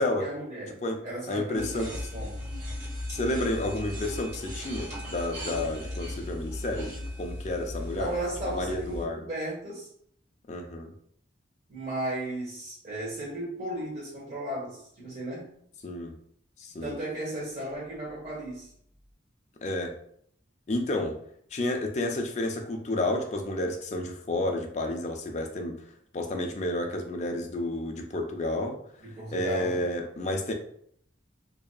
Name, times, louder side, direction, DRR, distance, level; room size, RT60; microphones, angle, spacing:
voice 1, 0.0-2.5 8.0-9.9 11.7-15.6 16.8-18.7 29.0-29.8, right 1 dB, 35° right, -7 dB, 1.4 m, -35 dB
voice 2, 1.3-1.9 3.1-8.1 8.5-9.2 10.5-10.9 15.8-16.1 16.6-16.9 19.6-20.0 20.7-21.2 21.5-25.8 26.1-28.8 29.3-30.5, left 1 dB, 35° left, 4 dB, 0.3 m, -30 dB
sound 1, 1.5-9.0, left 1 dB, 60° right, 1.4 m, -37 dB
2.7 x 2.4 x 2.2 m, 0.65 s
head